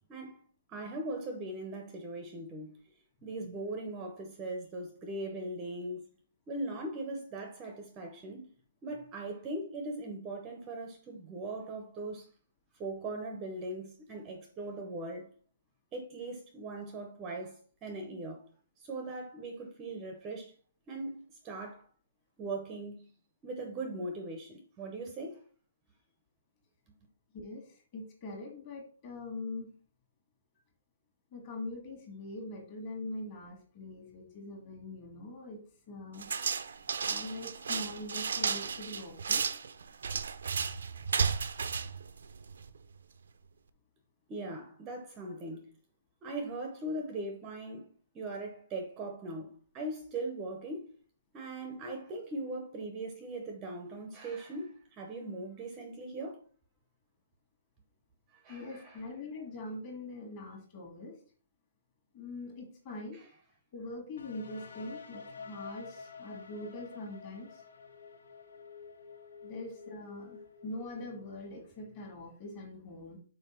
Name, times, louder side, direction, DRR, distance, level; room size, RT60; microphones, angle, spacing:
voice 1, 0.1-0.4 0.7-2.8 3.2-6.0 6.5-8.5 8.8-12.3 12.8-15.3 15.9-18.5 18.8-20.5 20.9-21.8 22.4-23.1 23.4-25.4 44.3-45.7 46.2-47.9 48.1-50.9 51.3-56.4 58.3-59.0 63.1-63.3, right 2 dB, 15° right, 0.7 m, -40 dB
voice 2, 27.3-29.7 31.3-35.6 35.9-36.3 37.1-39.5 58.5-61.2 62.1-63.2 63.7-67.6 69.4-73.2, left 2 dB, 25° left, 1.6 m, -43 dB
sound 1, 36.2-42.8, right 6 dB, 75° right, 0.6 m, -33 dB
sound 2, 64.2-71.9, left 5 dB, 75° left, 1.1 m, -49 dB
5.6 x 4.4 x 4.3 m
hypercardioid pair, 175°, 0 cm